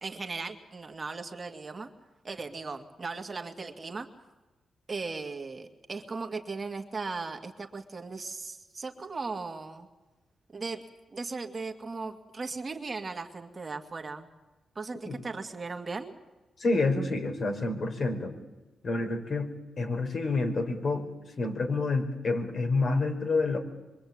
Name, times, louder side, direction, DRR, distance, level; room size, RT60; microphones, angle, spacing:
voice 1, 0.0-1.9 2.2-4.1 4.9-9.9 10.5-10.8 11.1-14.3 14.8-16.1, right 4 dB, 35° right, 5 dB, 2.3 m, -37 dB
voice 2, 16.6-18.3 18.8-19.5 19.8-21.1 21.4-23.6, left 3 dB, 50° left, 4 dB, 4.9 m, -28 dB
26.0 x 23.5 x 8.8 m, 1.1 s
cardioid pair, 105°, 0 cm